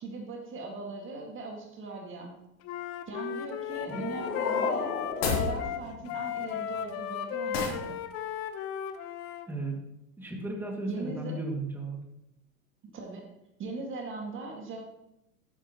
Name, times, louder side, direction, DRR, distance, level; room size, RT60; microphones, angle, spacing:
voice 1, 0.0-2.4 3.1-4.9 5.3-8.0 10.9-11.4 12.8-13.3 13.6-14.9, right 3 dB, 30° right, 1 dB, 1.9 m, -40 dB
Wind instrument woodwind instrument, 2.6-9.5, left 8 dB, 35° left, 0.9 m, -35 dB
sound 1, 3.6-6.6, left 4 dB, 85° left, 1.1 m, -35 dB
sound 2, 5.1-5.5 7.5-7.9, left 4 dB, 50° left, 3.5 m, -29 dB
voice 2, 9.5-9.8 10.2-12.0, right 2 dB, 5° right, 0 dB, 2.1 m, -35 dB
12.0 x 10.0 x 3.0 m, 0.84 s
hypercardioid pair, 95°, 43 cm